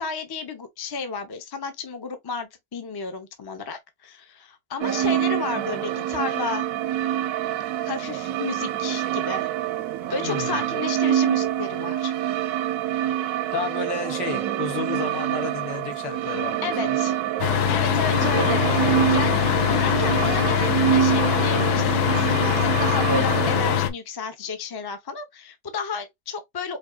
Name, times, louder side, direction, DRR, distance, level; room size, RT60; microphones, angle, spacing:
voice 1, 0.0-6.6 7.8-9.5 10.1-12.1 16.6-17.2 17.7-26.8, left 5 dB, 40° left, 0.3 m, -32 dB
sound 1, 4.8-23.8, right 12 dB, 70° right, 0.9 m, -26 dB
voice 2, 10.1-10.6 13.5-17.0, left 6 dB, 90° left, 1.7 m, -32 dB
sound 2, 17.4-23.9, left 11 dB, 75° left, 1.1 m, -22 dB
5.2 x 2.7 x 2.3 m
omnidirectional pair, 1.8 m